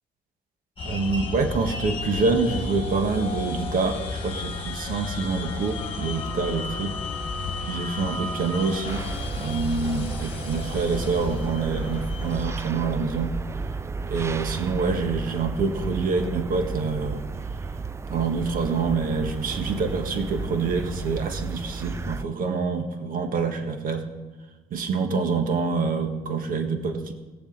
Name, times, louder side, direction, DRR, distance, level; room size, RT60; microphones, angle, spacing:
sound 1, 0.8-12.4, left 3 dB, 35° left, 1.7 m, -33 dB
voice 1, 0.8-6.9 7.6-9.0 9.3-13.3 14.0-17.2 18.1-24.1 24.7-27.1, right 4 dB, 55° right, 6 dB, 1.5 m, -26 dB
sound 2, 8.9-22.2, right 4 dB, 15° right, 0.3 m, -33 dB
18.5 x 7.3 x 4.0 m, 1.2 s
cardioid pair, 110°, 17 cm